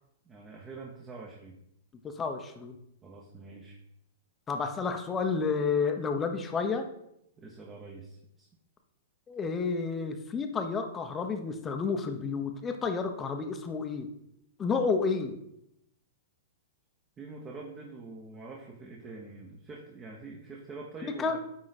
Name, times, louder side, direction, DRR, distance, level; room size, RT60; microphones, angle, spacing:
voice 1, 0.2-1.6 3.0-3.8 4.8-4.9 7.4-8.5 17.2-21.4, right 3 dB, 20° right, -1 dB, 1.1 m, -45 dB
voice 2, 2.0-2.8 4.5-6.9 9.3-14.1 14.6-15.3 21.2-21.4, left 5 dB, 20° left, 6 dB, 0.9 m, -30 dB
9.8 x 3.8 x 4.2 m, 0.77 s
hypercardioid pair, 135°, 0 cm